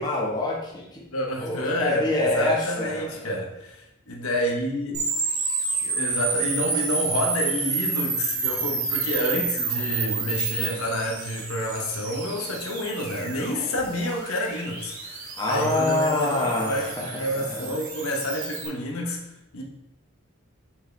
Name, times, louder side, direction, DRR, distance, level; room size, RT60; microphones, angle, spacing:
voice 1, 0.0-1.0 1.4-3.3 15.4-17.7, left 2 dB, 20° left, -3 dB, 1.3 m, -26 dB
voice 2, 1.1-5.0 5.8-19.2 19.5-19.6, equal, 85° left, 0 dB, 1.2 m, -29 dB
sound 1, 4.9-18.7, right 4 dB, 75° right, 1.9 m, -30 dB
7.3 x 4.6 x 3.4 m, 0.88 s
head